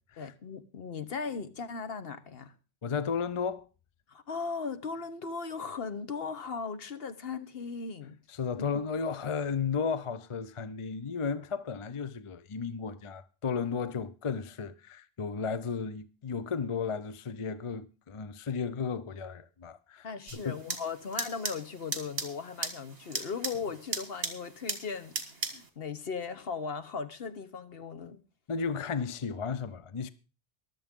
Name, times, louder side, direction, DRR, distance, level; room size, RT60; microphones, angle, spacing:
voice 1, 0.2-2.5 4.1-8.2 20.0-25.2 25.4-28.2, left 5 dB, 65° left, 1.2 m, -38 dB
voice 2, 2.8-3.6 8.4-20.1 20.3-20.5 28.5-30.1, left 5 dB, 35° left, 0.6 m, -34 dB
sound 1, 20.3-25.7, right 4 dB, 65° right, 1.9 m, -38 dB
23.0 x 7.7 x 3.7 m
omnidirectional pair, 1.1 m